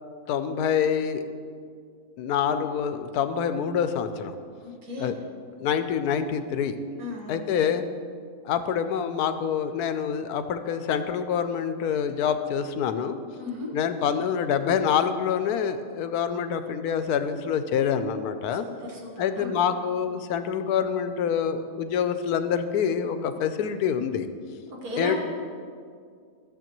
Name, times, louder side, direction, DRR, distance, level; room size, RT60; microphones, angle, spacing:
voice 1, 0.3-1.2 2.2-4.3 5.0-5.1 5.6-6.8 7.3-7.8 8.4-13.2 13.7-18.7 19.2-24.3 25.0-25.2, left 7 dB, 85° left, 10 dB, 1.1 m, -26 dB
voice 2, 4.6-5.2 7.0-7.4 13.4-13.7 18.6-19.6 24.7-25.2, left 2 dB, 75° right, -2 dB, 2.0 m, -35 dB
14.5 x 7.1 x 3.0 m, 2.2 s
omnidirectional pair, 1.6 m